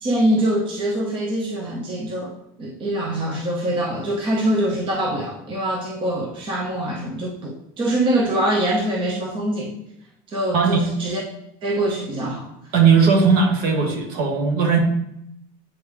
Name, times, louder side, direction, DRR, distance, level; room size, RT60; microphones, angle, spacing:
voice 1, 0.0-9.7 10.3-11.2 11.6-12.5, right 1 dB, 25° right, -2 dB, 0.8 m, -24 dB
voice 2, 10.5-10.8 12.7-14.8, right 5 dB, 55° right, 2 dB, 1.2 m, -17 dB
8.4 x 3.4 x 3.3 m, 0.79 s
cardioid pair, 175°, 20 cm